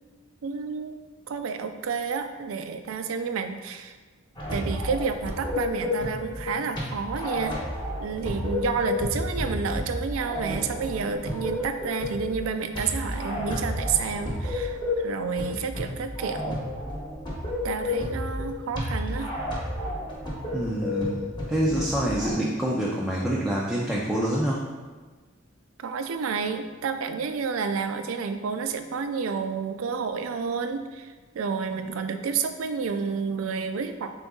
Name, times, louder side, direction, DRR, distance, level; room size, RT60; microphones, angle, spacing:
voice 1, 0.4-1.0 1.3-4.0 4.5-7.5 8.0-16.6 17.6-19.3 25.8-31.1 31.3-34.1, right 5 dB, 90° right, 8 dB, 0.4 m, -30 dB
sound 1, 4.4-22.3, left 1 dB, 20° left, 1.0 m, -31 dB
voice 2, 20.5-24.7, right 1 dB, 5° right, -6 dB, 0.4 m, -26 dB
3.9 x 3.8 x 3.6 m, 1.3 s
head